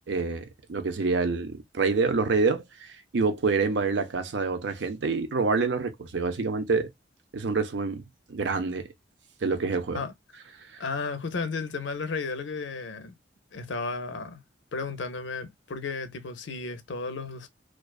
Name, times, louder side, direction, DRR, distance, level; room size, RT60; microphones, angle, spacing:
voice 1, 0.1-6.9 7.3-8.0 8.3-8.9 9.4-10.0, right 4 dB, 75° right, 0.6 m, -27 dB
voice 2, 10.8-13.1 13.5-14.4 14.7-17.5, left 4 dB, 85° left, 0.6 m, -33 dB
2.4 x 2.2 x 2.3 m
head